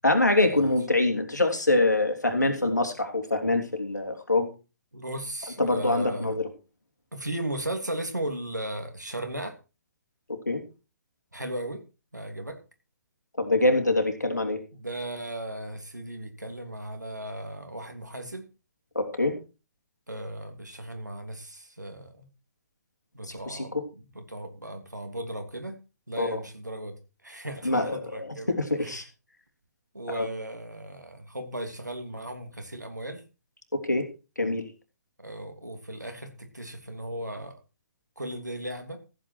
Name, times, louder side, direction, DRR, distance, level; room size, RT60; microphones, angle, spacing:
voice 1, 0.0-4.5 5.6-6.5 10.3-10.6 13.4-14.6 18.9-19.3 23.3-23.8 26.2-26.4 27.6-29.0 30.1-30.3 33.7-34.1 34.4-34.6, left 2 dB, 80° left, 4 dB, 3.3 m, -25 dB
voice 2, 4.9-6.4 7.1-9.6 11.3-11.8 12.1-12.6 14.7-18.4 20.1-22.3 23.1-25.8 26.1-27.0 27.2-28.5 28.8-29.0 29.9-33.2 35.2-37.5 38.2-39.0, right 1 dB, 85° right, 5 dB, 2.9 m, -36 dB
14.5 x 9.0 x 4.6 m, 0.31 s
figure-of-eight pair, 125°, 9 cm